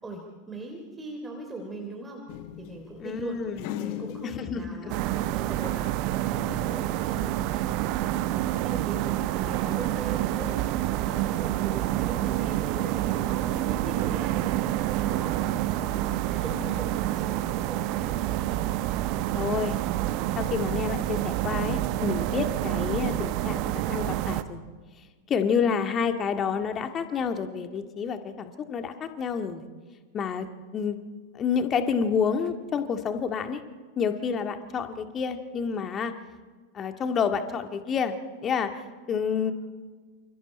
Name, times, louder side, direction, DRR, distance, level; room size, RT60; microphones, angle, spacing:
voice 1, 0.0-2.2 2.6-3.4 3.7-5.0 5.3-5.9 6.2-7.7 8.1-10.6 10.9-14.6 15.0-15.4 15.7-16.2 16.4-18.6, right 2 dB, 10° right, 2 dB, 3.3 m, -40 dB
sound 1, 2.3-6.0 6.3-7.5, left 12 dB, 45° left, 1.2 m, -40 dB
voice 2, 3.0-3.7 4.2-4.9 16.3-16.8 19.3-19.8 20.4-24.6 25.3-29.6 30.1-31.0 31.3-33.6 34.0-36.1 36.7-38.2 38.4-39.5, left 6 dB, 25° left, 6 dB, 1.9 m, -29 dB
sound 2, 4.9-24.4, right 14 dB, 45° right, 1.1 m, -28 dB
28.5 x 28.0 x 4.4 m, 1.5 s
figure-of-eight pair, 90°, 0 cm